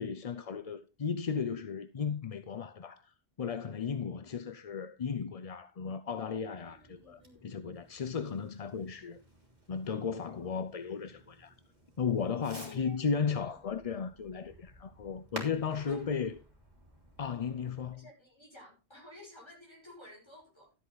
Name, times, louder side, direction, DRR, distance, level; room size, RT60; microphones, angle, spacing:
voice 1, 0.0-9.2 9.7-11.5 12.0-16.3 17.2-18.1, left 6 dB, 45° left, 0.6 m, -35 dB
Fireworks, 6.5-17.9, right 1 dB, 40° right, 3.4 m, -52 dB
voice 2, 6.6-7.6 12.4-13.0 13.4-13.6 15.7-16.1 17.9-20.7, left 2 dB, 25° left, 6.0 m, -53 dB
13.0 x 8.2 x 4.0 m
omnidirectional pair, 1.1 m